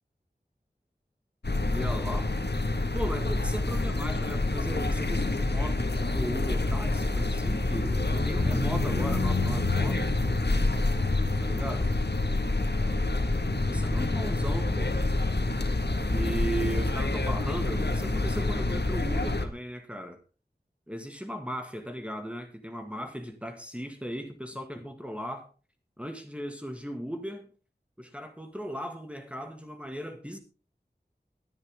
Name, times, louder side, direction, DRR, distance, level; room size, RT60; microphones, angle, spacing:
sound 1, 1.4-19.4, left 2 dB, 75° left, 1.9 m, -27 dB
voice 1, 1.7-2.3 2.9-10.2 11.4-11.9 13.3-15.0 16.1-20.2 20.9-25.5 26.0-27.5 28.0-30.4, equal, 5° right, 4 dB, 2.1 m, -37 dB
18.0 x 11.0 x 3.8 m, 0.33 s
wide cardioid pair, 40°, 17 cm